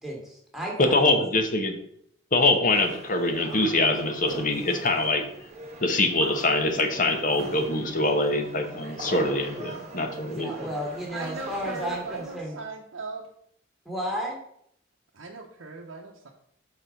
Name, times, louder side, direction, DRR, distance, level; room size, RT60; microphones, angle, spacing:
voice 1, 0.0-1.1 10.3-12.5 13.8-14.4, equal, ahead, -3 dB, 1.6 m, -33 dB
voice 2, 0.8-1.8 2.3-5.2 5.8-10.7, left 2 dB, 45° left, 6 dB, 1.0 m, -24 dB
sound 1, 2.7-12.4, right 2 dB, 35° right, 1.2 m, -42 dB
voice 3, 11.1-13.3 15.1-16.3, right 3 dB, 85° right, -2 dB, 0.8 m, -38 dB
6.1 x 4.3 x 5.1 m, 0.69 s
head